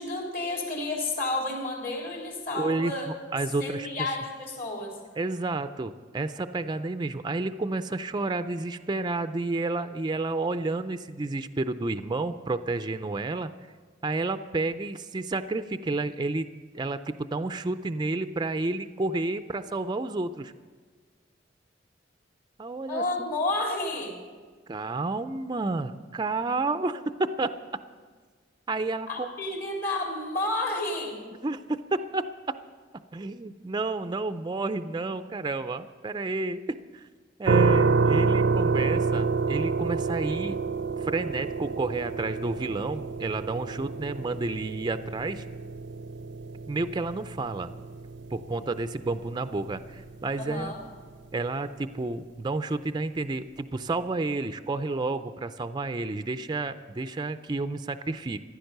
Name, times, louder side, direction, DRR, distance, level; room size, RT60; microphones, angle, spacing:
voice 1, 0.0-3.1 3.6-5.0 22.9-24.2 29.1-31.2 44.1-44.2 50.4-50.8, left 2 dB, 50° left, -1 dB, 3.6 m, -31 dB
voice 2, 2.5-3.9 5.2-13.5 14.0-16.5 16.7-20.5 22.6-23.3 24.7-27.5 28.7-29.3 31.4-32.3 33.1-36.6 36.9-37.1 37.4-40.6 41.0-45.4 46.7-47.7 48.3-50.7 51.3-58.4, right 3 dB, 25° right, 10 dB, 0.4 m, -30 dB
sound 1, 37.5-50.3, right 4 dB, 70° right, 0.5 m, -28 dB
15.0 x 10.5 x 6.6 m, 1.5 s
head